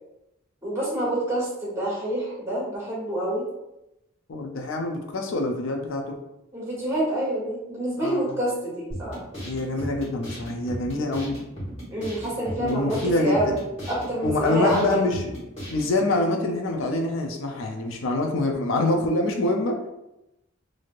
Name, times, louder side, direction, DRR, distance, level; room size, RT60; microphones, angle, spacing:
voice 1, 0.6-3.4 6.5-9.2 11.9-13.6 13.9-15.1, right 1 dB, 15° right, -6 dB, 1.2 m, -27 dB
voice 2, 4.3-6.2 8.0-8.3 9.4-11.4 12.6-13.5 14.2-15.4 15.7-19.9, left 2 dB, 80° left, 3 dB, 0.4 m, -25 dB
sound 1, 8.9-15.9, equal, 30° left, 1.4 m, -36 dB
3.1 x 2.7 x 2.5 m, 0.91 s
head